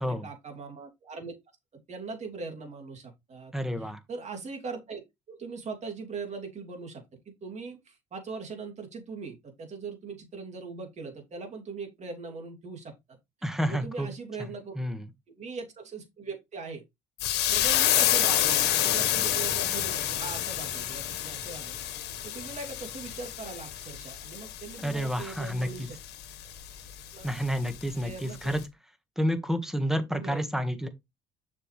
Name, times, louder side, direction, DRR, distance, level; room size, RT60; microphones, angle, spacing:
voice 1, 0.0-1.3 1.9-3.5 3.8-7.0 7.4-13.2 13.7-14.8 15.4-16.8 17.5-26.0 27.1-27.3 28.0-28.4 30.1-30.5, right 4 dB, 40° right, 2.8 m, -40 dB
voice 2, 3.5-4.0 13.4-14.1 14.8-15.0 24.8-25.9 27.2-28.6 29.2-30.9, equal, ahead, 1.5 m, -29 dB
sound 1, 17.2-28.1 28.5-28.6, left 12 dB, 85° left, 1.4 m, -29 dB
6.7 x 5.8 x 3.2 m
cardioid pair, 110°, 17 cm